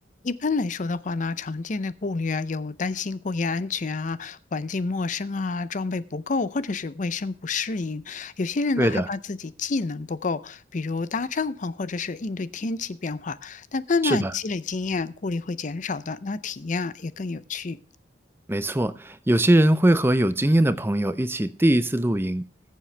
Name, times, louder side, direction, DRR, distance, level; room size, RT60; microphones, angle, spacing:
voice 1, 0.2-17.8, left 3 dB, 40° left, 0.5 m, -29 dB
voice 2, 18.5-22.4, right 1 dB, 10° right, 0.6 m, -21 dB
20.5 x 7.5 x 3.3 m
head